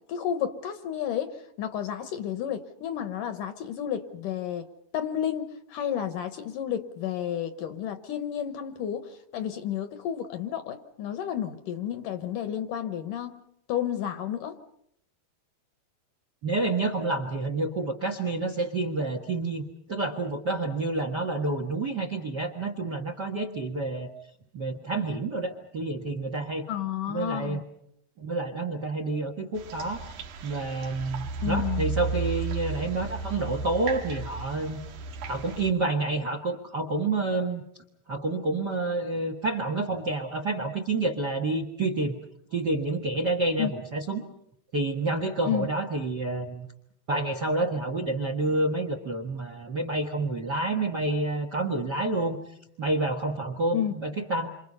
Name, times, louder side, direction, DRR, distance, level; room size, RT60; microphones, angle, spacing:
voice 1, 0.1-4.7 4.9-13.4 13.7-14.6 26.7-27.6 31.4-31.9 43.6-43.7 45.5-45.7 53.7-53.9, left 9 dB, 65° left, 9 dB, 2.3 m, -31 dB
voice 2, 16.4-24.1 24.5-26.6 27.1-27.6 28.2-30.0 30.4-34.8 35.3-37.6 38.1-42.1 42.5-44.2 44.7-46.7 47.1-52.4 52.8-54.5, right 2 dB, 50° right, 4 dB, 1.3 m, -29 dB
sound 1, 29.5-35.7, right 4 dB, 65° right, 2.6 m, -34 dB
28.5 x 27.0 x 5.5 m, 0.75 s
omnidirectional pair, 4.5 m